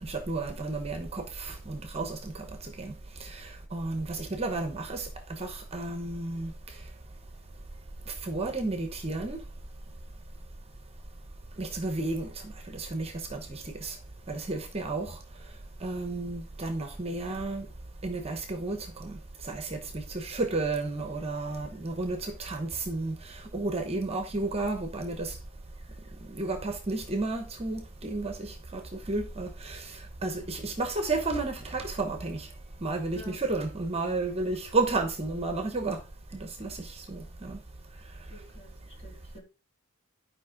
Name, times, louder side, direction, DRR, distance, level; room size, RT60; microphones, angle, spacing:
voice 1, 0.0-2.9 3.2-6.5 8.1-9.4 11.6-14.0 14.3-15.2 15.8-17.7 18.0-19.2 19.4-25.4 26.3-32.5 32.8-36.0 36.3-37.6, right 3 dB, 30° right, 1.0 m, -32 dB
voice 2, 38.3-39.4, left 2 dB, 25° left, 3.0 m, -50 dB
11.5 x 5.1 x 3.7 m
head